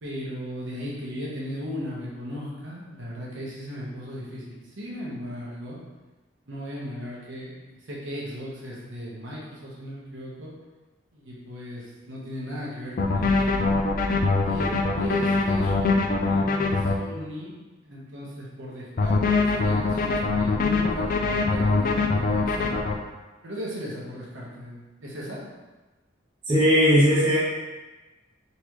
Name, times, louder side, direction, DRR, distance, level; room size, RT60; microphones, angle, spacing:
voice 1, 0.0-5.8 6.5-7.6 7.9-10.5 11.1-13.7 14.4-17.5 17.8-22.9 23.4-25.4, equal, 75° right, -5 dB, 1.1 m, -37 dB
sound 1, 13.0-16.9 19.0-22.9, left 3 dB, 45° left, 0.4 m, -23 dB
voice 2, 26.5-27.4, equal, 25° right, -8 dB, 0.9 m, -18 dB
4.0 x 3.3 x 3.0 m, 1.2 s
head